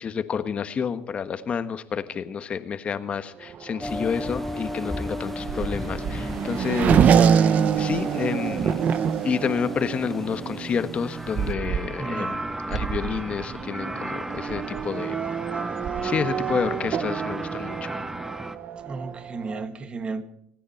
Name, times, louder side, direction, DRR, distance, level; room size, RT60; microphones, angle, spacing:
voice 1, 0.0-8.8 9.2-12.4 12.7-15.2 16.0-18.0, left 6 dB, 40° left, 1.3 m, -29 dB
Race car auto racing / Accelerating revving vroom, 3.4-19.6, right 7 dB, 50° right, 0.9 m, -26 dB
sound 1, 3.8-11.5, left 1 dB, 5° left, 0.9 m, -36 dB
sound 2, 11.0-18.6, right 2 dB, 10° right, 1.2 m, -35 dB
voice 2, 12.0-12.4 18.9-20.2, right 4 dB, 30° right, 1.8 m, -33 dB
26.5 x 10.0 x 4.5 m
supercardioid pair, 95°, 3 cm